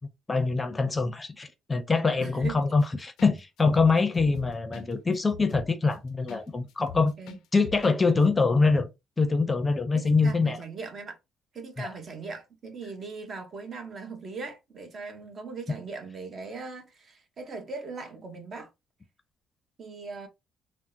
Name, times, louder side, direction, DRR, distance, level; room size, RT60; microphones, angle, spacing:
voice 1, 0.3-7.1 7.5-8.9 9.2-10.6 11.8-11.9, left 4 dB, 25° left, 0.5 m, -24 dB
voice 2, 2.2-2.6 7.2-7.4 9.9-11.2 11.5-18.7 19.8-20.3, right 4 dB, 50° right, 0.9 m, -39 dB
sound 1, 2.4-2.8 3.2-3.3 3.6-6.4 6.7-8.0 8.2-8.3, left 9 dB, 80° left, 0.4 m, -43 dB
3.6 x 2.0 x 2.6 m
supercardioid pair, 80°, 0 cm